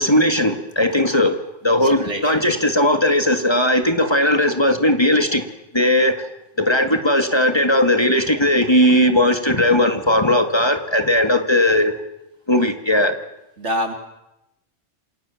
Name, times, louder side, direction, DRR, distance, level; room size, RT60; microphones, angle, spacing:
voice 1, 0.0-1.4 1.6-5.4 5.7-6.3 6.6-11.9 12.5-13.2, left 1 dB, 20° left, 7 dB, 2.3 m, -17 dB
voice 2, 1.8-2.5 13.6-13.9, equal, 70° right, 6 dB, 3.7 m, -26 dB
29.0 x 26.5 x 7.3 m, 0.90 s
omnidirectional pair, 1.2 m